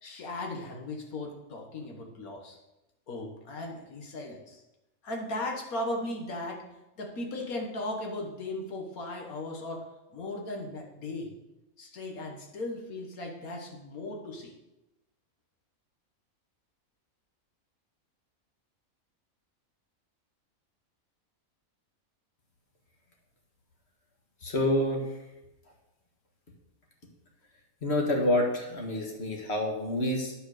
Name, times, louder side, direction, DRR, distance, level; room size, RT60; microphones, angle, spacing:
voice 1, 0.0-2.6 3.1-4.6 5.0-6.7 7.0-9.9 10.1-11.3 11.8-14.5, left 2 dB, 85° left, 1 dB, 1.8 m, -37 dB
voice 2, 24.4-25.2 27.8-30.3, left 1 dB, 50° left, 1 dB, 1.8 m, -28 dB
9.5 x 5.4 x 6.5 m, 0.95 s
omnidirectional pair, 1.5 m